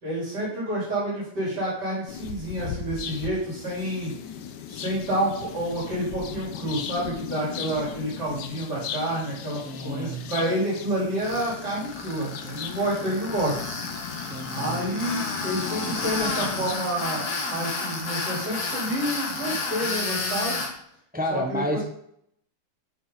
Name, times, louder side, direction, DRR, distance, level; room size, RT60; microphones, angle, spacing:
voice 1, 0.0-4.1 4.7-13.6 14.5-20.6 21.3-21.8, right 1 dB, 80° right, -7 dB, 4.1 m, -29 dB
sound 1, 2.1-16.7, left 8 dB, 85° left, 1.4 m, -37 dB
voice 2, 9.6-10.3 14.3-14.8 21.1-21.8, equal, 10° right, 3 dB, 0.5 m, -30 dB
Tools, 11.2-20.7, left 3 dB, 65° left, 1.9 m, -31 dB
8.5 x 6.2 x 3.9 m, 0.69 s
omnidirectional pair, 1.8 m